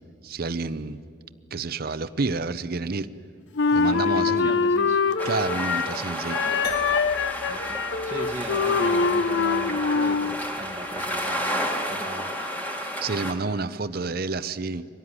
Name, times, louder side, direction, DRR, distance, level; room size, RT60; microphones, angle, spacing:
voice 1, 0.2-1.1 1.5-3.1 3.7-4.5 5.2-6.4 12.8-14.9, right 3 dB, 55° right, 13 dB, 0.7 m, -29 dB
Wind instrument woodwind instrument, 3.6-6.0 6.3-10.4, left 5 dB, 80° left, 0.6 m, -24 dB
voice 2, 3.8-5.0 7.5-7.8 8.0-12.3, right 1 dB, 15° right, -2 dB, 1.5 m, -37 dB
sound 1, 5.2-13.3, equal, 10° left, 2.2 m, -31 dB
sound 2, 6.6-11.2, left 2 dB, 35° left, 3.3 m, -41 dB
24.5 x 18.5 x 9.8 m, 2.3 s
head